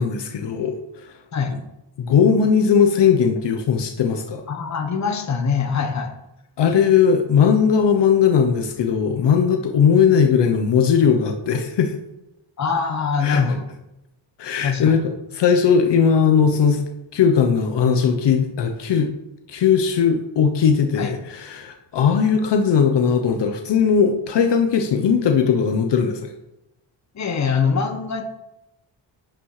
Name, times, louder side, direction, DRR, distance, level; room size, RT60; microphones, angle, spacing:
voice 1, 0.0-1.1 2.0-4.4 6.6-11.9 13.2-13.4 14.4-16.8 17.1-19.1 19.5-26.3, left 7 dB, 60° left, 5 dB, 1.1 m, -18 dB
voice 2, 4.5-6.1 12.6-13.7 14.6-15.0 21.0-21.2 27.1-28.2, left 5 dB, 35° left, 4 dB, 1.4 m, -23 dB
11.5 x 9.1 x 5.0 m, 0.91 s
wide cardioid pair, 165°, 46 cm